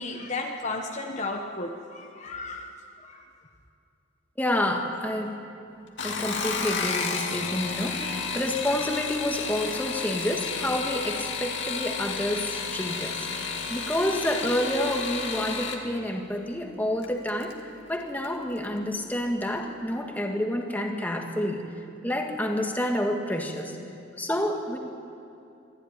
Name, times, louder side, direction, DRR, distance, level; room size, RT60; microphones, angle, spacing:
voice 1, 0.0-2.7 3.0-3.2, left 3 dB, 35° left, 2 dB, 1.2 m, -34 dB
voice 2, 4.4-5.4 6.0-17.6 17.9-21.6 22.0-23.8 24.2-24.8, left 1 dB, 10° left, 2 dB, 1.8 m, -29 dB
sound 1, 5.9-15.8 17.0-17.5 17.9-18.4 18.6-18.7, left 5 dB, 65° left, 2.2 m, -32 dB
24.0 x 14.0 x 9.8 m, 2.6 s
head